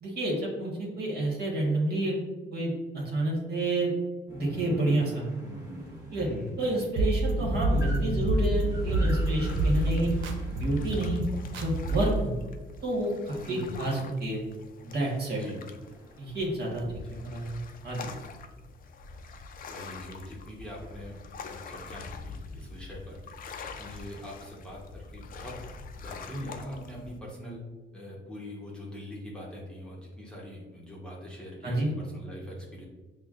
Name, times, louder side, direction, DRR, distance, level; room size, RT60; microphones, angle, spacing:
voice 1, 0.0-2.1 2.5-3.9 4.3-5.3 6.1-6.3 6.6-10.1 10.5-11.2 11.5-12.3 12.8-14.4 14.8-15.4 16.2-16.8 17.1-18.1 31.6-31.9, right 1 dB, 55° right, -3 dB, 1.3 m, -29 dB
sound 1, 4.3-13.2 15.6-16.5, right 1 dB, 20° right, 1.3 m, -42 dB
voice 2, 6.2-6.5 13.4-13.8 15.4-15.6 17.0-17.2 19.7-23.2 23.8-25.5 26.0-27.6 27.9-32.8, left 1 dB, 5° left, -5 dB, 0.9 m, -42 dB
sound 2, 7.0-12.2, right 1 dB, 80° right, 0.5 m, -28 dB
sound 3, 9.4-27.2, left 4 dB, 45° left, 0.4 m, -45 dB
5.9 x 2.2 x 2.4 m, 1.2 s
cardioid pair, 90°, 20 cm